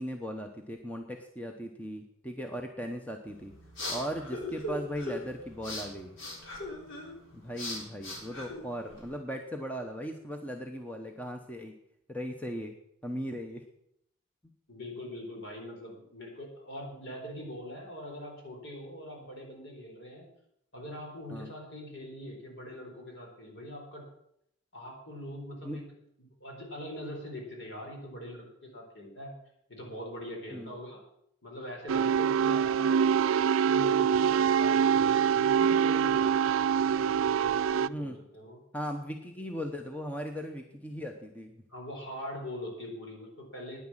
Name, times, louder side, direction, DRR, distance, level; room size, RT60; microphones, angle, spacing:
voice 1, 0.0-3.5 3.9-6.2 7.3-11.7 12.1-12.8 13.0-13.7 21.3-21.5 25.6-25.8 30.5-30.7 37.8-38.2 38.7-41.6, equal, 5° left, 3 dB, 0.8 m, -38 dB
sound 1, 3.3-9.2, left 1 dB, 75° left, 3.8 m, -40 dB
voice 2, 14.7-20.3 20.7-24.0 24.7-25.8 26.2-29.3 29.7-31.0 31.4-33.2 33.6-38.6 41.7-43.8, equal, 60° left, 0 dB, 4.1 m, -42 dB
sound 2, 31.9-37.9, right 7 dB, 80° right, 0.4 m, -25 dB
10.0 x 9.8 x 7.4 m, 0.75 s
head